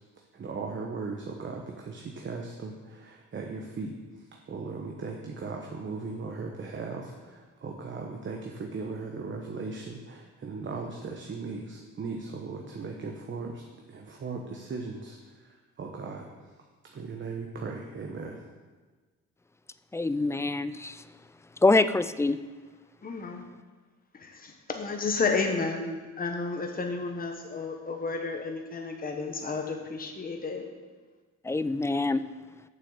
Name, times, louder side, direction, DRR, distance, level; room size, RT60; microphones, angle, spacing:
voice 1, 0.2-13.6 13.9-16.5 16.8-18.4, right 4 dB, 40° right, 1 dB, 1.1 m, -38 dB
voice 2, 19.9-21.0 21.6-22.4 31.4-32.2, left 3 dB, 10° left, 14 dB, 0.3 m, -25 dB
voice 3, 23.0-23.4 24.1-30.7, left 4 dB, 30° left, 3 dB, 1.3 m, -32 dB
7.6 x 6.6 x 6.6 m, 1.3 s
cardioid pair, 90°, 30 cm